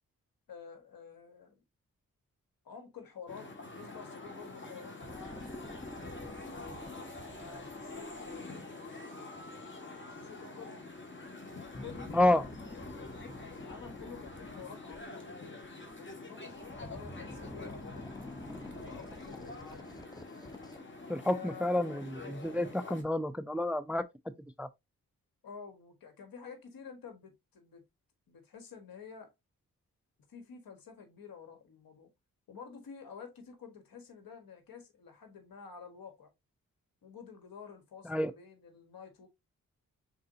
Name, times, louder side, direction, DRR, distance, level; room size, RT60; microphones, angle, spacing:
voice 1, 0.5-1.6 2.6-5.4 6.0-7.1 7.3-9.1 10.0-10.9 11.8-15.6 16.0-18.2 18.5-19.9 21.2-21.7 25.4-27.8 28.3-29.3 30.3-32.1 32.5-36.3 37.0-39.3, left 6 dB, 75° left, 1.6 m, -50 dB
sound 1, 3.3-23.0, left 2 dB, 35° left, 1.7 m, -46 dB
sound 2, 5.0-8.4 11.5-15.1 15.6-16.1 16.5-21.0 21.3-21.4, left 1 dB, 10° left, 0.9 m, -48 dB
voice 2, 12.1-12.4 21.1-24.1 24.6-24.7 38.1-38.3, left 1 dB, 5° right, 0.4 m, -29 dB
4.7 x 3.9 x 2.7 m
cardioid pair, 55°, 35 cm